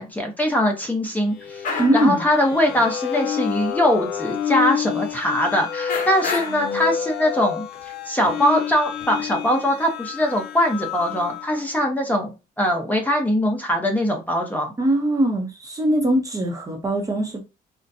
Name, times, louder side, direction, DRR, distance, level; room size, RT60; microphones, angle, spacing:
voice 1, 0.0-1.7 1.9-14.7, equal, 10° left, 0.8 m, -22 dB
sound 1, 1.3-11.6, left 8 dB, 75° left, 0.5 m, -29 dB
sound 2, 1.3-1.4 1.6-2.3 2.5-2.9 3.6-3.7 4.1-4.2 5.5-5.6 5.9-6.7 7.7-7.8 8.3-9.1, left 4 dB, 50° left, 0.9 m, -30 dB
voice 2, 1.8-2.2 14.8-17.4, right 1 dB, 20° right, 0.7 m, -21 dB
3.9 x 2.2 x 2.7 m
cardioid pair, 110°, 17 cm